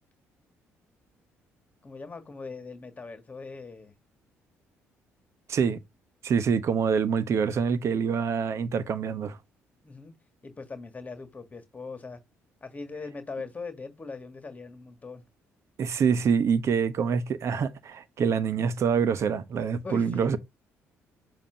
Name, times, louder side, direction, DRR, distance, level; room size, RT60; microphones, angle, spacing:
voice 1, 1.8-3.9 9.8-10.1 10.4-12.2 12.6-15.2 19.8-20.4, left 4 dB, 25° left, 1.6 m, -40 dB
voice 2, 5.5-5.8 6.2-9.4 15.8-20.4, right 6 dB, 55° right, 0.9 m, -26 dB
7.2 x 2.8 x 5.6 m
supercardioid pair, 70°, 6 cm